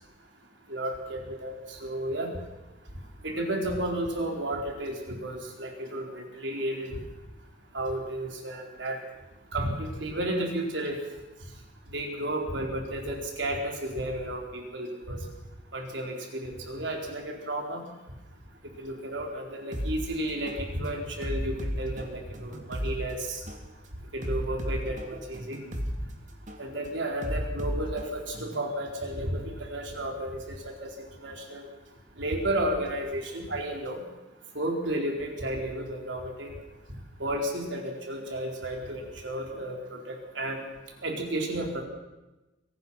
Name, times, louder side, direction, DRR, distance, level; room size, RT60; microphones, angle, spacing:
voice 1, 0.7-2.3 3.2-7.0 7.7-9.0 9.5-11.0 11.9-15.2 15.7-17.8 18.8-23.4 24.1-25.6 26.6-30.9 31.2-31.7 32.2-34.0 34.5-36.5 37.2-40.6 41.0-41.8, right 1 dB, 70° right, 1 dB, 4.5 m, -32 dB
sound 1, 19.7-19.9 20.5-20.7 21.2-22.9 23.5-23.7 24.2-25.9 26.5-26.7 27.2-28.7, equal, 40° right, 2.7 m, -33 dB
24.5 x 18.0 x 5.9 m, 1.1 s
head